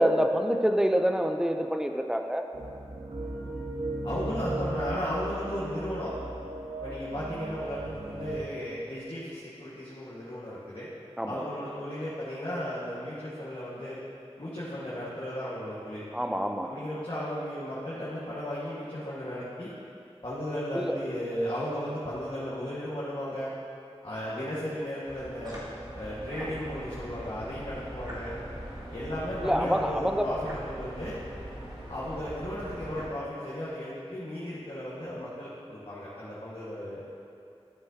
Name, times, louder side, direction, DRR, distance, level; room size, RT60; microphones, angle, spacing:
voice 1, 0.0-2.5 11.2-11.5 16.1-16.7 20.7-21.0 29.4-30.3, equal, 5° right, 5 dB, 0.6 m, -26 dB
sound 1, 2.5-8.4, right 2 dB, 65° right, 1.2 m, -36 dB
voice 2, 4.0-6.1 6.8-10.9 11.2-14.0 14.4-16.0 16.6-19.7 20.2-23.5 24.0-25.6 25.9-28.3 28.9-31.2 31.9-37.0, equal, 50° left, -9 dB, 1.7 m, -35 dB
sound 2, 25.1-33.1, right 1 dB, 35° right, 2.1 m, -41 dB
12.5 x 7.6 x 2.8 m, 2.7 s
wide cardioid pair, 45°, 11 cm